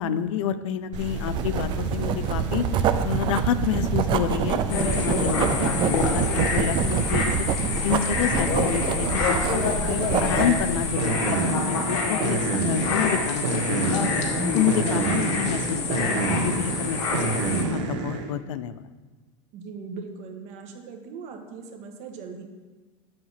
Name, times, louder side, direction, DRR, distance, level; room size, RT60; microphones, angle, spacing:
voice 1, 0.0-7.3 7.8-14.0 14.5-18.8, left 9 dB, 85° left, 13 dB, 0.6 m, -29 dB
sound 1, 0.9-18.3, right 3 dB, 75° right, 1.7 m, -30 dB
Writing, 1.3-10.6, right 9 dB, 30° right, 0.4 m, -27 dB
sound 2, 4.7-17.6, left 4 dB, 60° left, 2.0 m, -27 dB
voice 2, 19.5-22.4, right 5 dB, 45° right, 4 dB, 1.6 m, -39 dB
8.0 x 7.8 x 5.8 m, 1.2 s
supercardioid pair, 150°, 16 cm